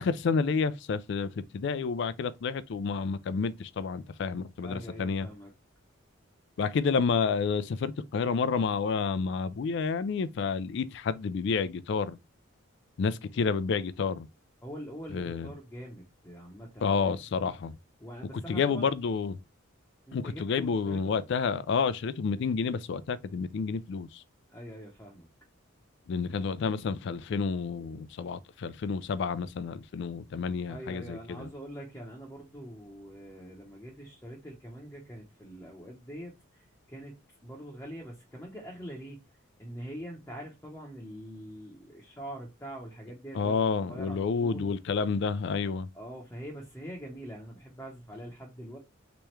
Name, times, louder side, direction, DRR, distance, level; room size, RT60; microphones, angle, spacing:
voice 1, 0.0-5.3 6.6-12.2 13.0-14.3 15.1-15.5 16.8-17.7 18.5-19.4 20.1-24.2 26.1-31.5 43.3-45.9, left 5 dB, 55° left, 0.3 m, -30 dB
voice 2, 4.6-5.5 14.6-17.5 18.0-18.9 20.1-21.0 24.5-25.3 30.7-37.1 37.4-39.2 39.6-44.7 45.9-48.8, equal, 10° left, 0.7 m, -44 dB
3.4 x 3.0 x 3.2 m
head